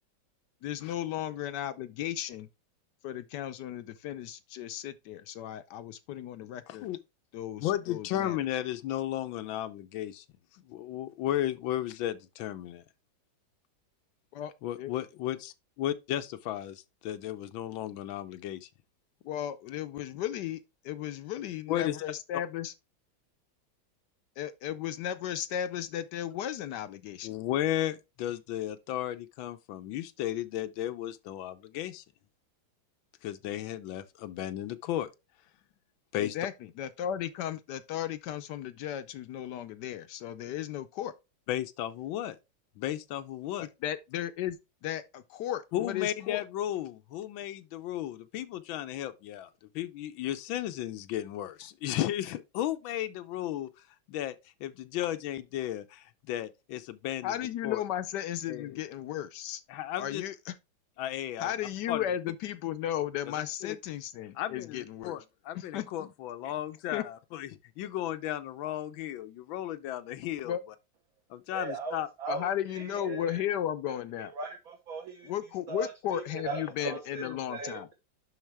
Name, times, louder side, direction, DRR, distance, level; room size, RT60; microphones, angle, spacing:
voice 1, 0.6-2.5 3.0-6.9 7.3-8.4 14.3-14.5 14.8-14.9 19.2-22.7 24.4-27.3 36.2-41.1 43.6-46.4 57.2-59.6 60.0-60.6 61.4-65.2 65.5-65.9 66.4-66.5 66.9-67.0 70.4-70.6 72.3-74.3 75.2-77.9, left 11 dB, 70° left, 1.1 m, -35 dB
voice 2, 7.6-10.2 10.7-12.8 14.6-18.7 21.7-22.0 27.2-32.0 33.2-35.1 36.1-36.4 41.5-42.4 42.8-43.7 45.7-49.5 49.7-53.7 54.1-54.4 54.6-57.3 57.6-57.8 58.5-58.8 59.7-60.2 61.0-61.5 61.9-62.0 63.6-63.8 64.4-67.5 67.8-70.5 71.3-72.1 77.2-77.4, left 12 dB, 90° left, 1.4 m, -34 dB
voice 3, 71.5-73.4 74.2-75.3 75.7-77.9, right 4 dB, 50° right, 1.4 m, -38 dB
11.0 x 4.0 x 3.3 m
omnidirectional pair, 2.1 m